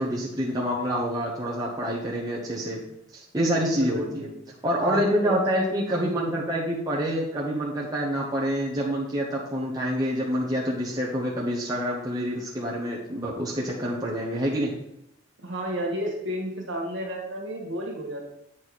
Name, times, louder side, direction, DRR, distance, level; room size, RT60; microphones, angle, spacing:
voice 1, 0.0-2.8 3.1-4.3 4.6-14.7, equal, 20° right, -5 dB, 0.9 m, -27 dB
voice 2, 3.6-4.3 4.8-5.4 5.9-6.4 15.4-18.2, right 1 dB, 55° right, 0 dB, 1.7 m, -32 dB
8.5 x 4.7 x 4.2 m, 0.81 s
head